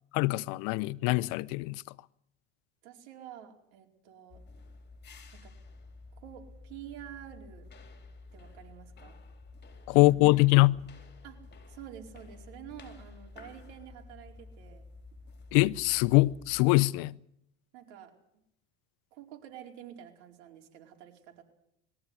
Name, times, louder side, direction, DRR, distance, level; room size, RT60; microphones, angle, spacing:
voice 1, 0.1-1.8 9.9-10.8 15.5-17.1, left 22 dB, 70° left, 0.8 m, -23 dB
voice 2, 2.8-4.4 5.3-5.5 6.1-7.7 8.3-9.2 9.9-10.0 11.2-11.4 11.7-14.9 17.7-18.1 19.1-21.4, right 10 dB, 80° right, 4.5 m, -48 dB
sound 1, 4.3-16.6, left 3 dB, 30° left, 4.1 m, -51 dB
21.5 x 14.5 x 9.8 m
supercardioid pair, 115°, 36 cm